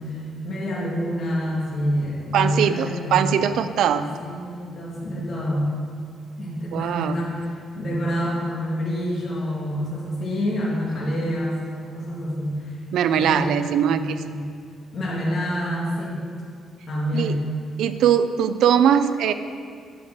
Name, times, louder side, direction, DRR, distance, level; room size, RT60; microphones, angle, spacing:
voice 1, 0.0-3.3 3.8-5.7 6.4-12.8 13.1-13.5 13.8-14.4 14.9-16.2 16.9-17.4, equal, 40° left, -5 dB, 2.8 m, -27 dB
voice 2, 2.3-4.1 6.7-7.2 12.9-14.2 17.1-17.4 17.8-19.3, right 9 dB, 75° right, 11 dB, 0.5 m, -21 dB
8.9 x 7.6 x 7.9 m, 2.2 s
cardioid pair, 165°, 0 cm